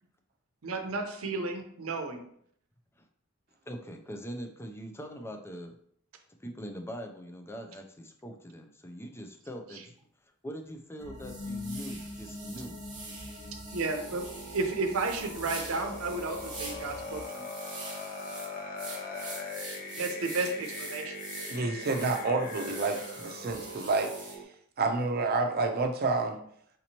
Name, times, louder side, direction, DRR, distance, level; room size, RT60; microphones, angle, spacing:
voice 1, 0.6-2.2 13.7-14.2 14.5-17.4 20.0-21.1, right 3 dB, 85° right, 5 dB, 0.7 m, -32 dB
voice 2, 3.7-5.8 6.4-9.8 10.4-12.8, equal, 10° left, 4 dB, 0.4 m, -42 dB
sound 1, 10.0-10.1 10.6-10.7 11.2-24.3, right 3 dB, 20° right, 1.2 m, -45 dB
sound 2, 11.0-17.2, left 2 dB, 80° left, 1.0 m, -44 dB
sound 3, 13.8-24.4, left 2 dB, 45° left, 0.7 m, -41 dB
voice 3, 21.5-24.4 24.8-26.4, right 3 dB, 50° right, 4 dB, 0.6 m, -29 dB
5.1 x 2.9 x 2.9 m, 0.64 s
head